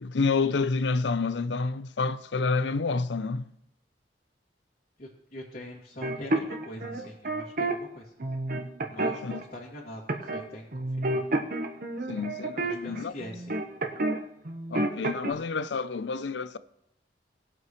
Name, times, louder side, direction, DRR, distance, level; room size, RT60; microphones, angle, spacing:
voice 1, 0.0-3.5 9.2-9.4 12.1-13.1 14.7-16.6, left 4 dB, 85° left, 0.6 m, -29 dB
voice 2, 5.0-8.1 8.9-11.2 12.6-13.5, left 1 dB, 55° left, 2.5 m, -43 dB
sound 1, 6.0-7.7 8.2-9.4 10.1-10.5 10.7-14.2 14.5-15.3, right 2 dB, 55° right, 1.1 m, -29 dB
20.0 x 7.9 x 3.1 m
head